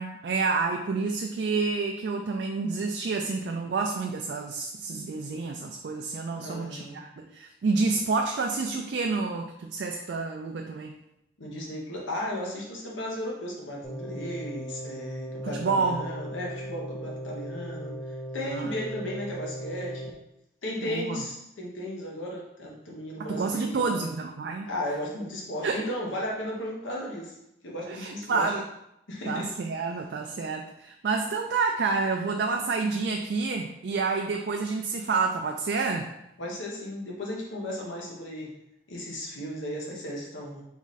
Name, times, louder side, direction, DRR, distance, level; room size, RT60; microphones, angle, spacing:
voice 1, 0.0-10.9 15.4-16.0 18.5-18.7 20.8-21.2 23.2-24.7 25.6-25.8 27.9-28.6 29.3-36.1, right 4 dB, 60° right, 2 dB, 0.3 m, -29 dB
voice 2, 6.3-7.0 11.4-20.1 20.6-24.1 24.7-27.3 27.6-28.6 29.1-29.5 36.4-38.5 38.9-40.6, left 1 dB, 85° left, -3 dB, 1.0 m, -35 dB
sound 1, 13.8-20.1, right 1 dB, 15° left, 0.5 m, -37 dB
3.6 x 3.1 x 4.0 m, 0.82 s
head